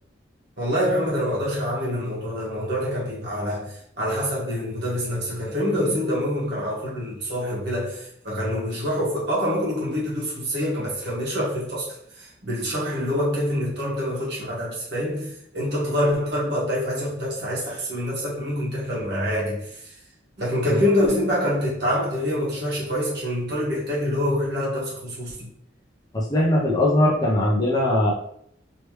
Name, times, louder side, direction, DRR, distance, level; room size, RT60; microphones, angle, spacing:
voice 1, 0.6-11.9 12.1-19.9 20.4-25.5, equal, 60° right, -6 dB, 1.4 m, -26 dB
voice 2, 26.1-28.1, left 1 dB, 20° left, -3 dB, 0.6 m, -20 dB
3.1 x 3.1 x 3.1 m, 0.69 s
head